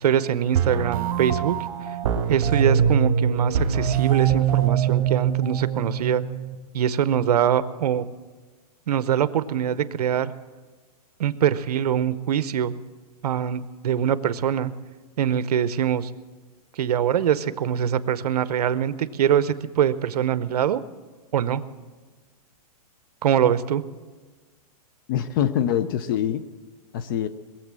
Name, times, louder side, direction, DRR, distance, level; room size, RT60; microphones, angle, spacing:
voice 1, 0.0-1.6 2.3-6.2 6.7-8.0 8.9-10.3 11.2-12.8 13.2-14.7 15.2-16.1 16.8-20.8 21.3-21.6 23.2-23.8, right 9 dB, 75° right, 15 dB, 0.8 m, -23 dB
sound 1, 0.5-6.6, right 8 dB, 55° right, 2.3 m, -23 dB
voice 2, 25.1-26.4 26.9-27.3, left 10 dB, 35° left, 13 dB, 0.5 m, -24 dB
21.5 x 7.6 x 7.5 m, 1.4 s
hypercardioid pair, 165°, 20 cm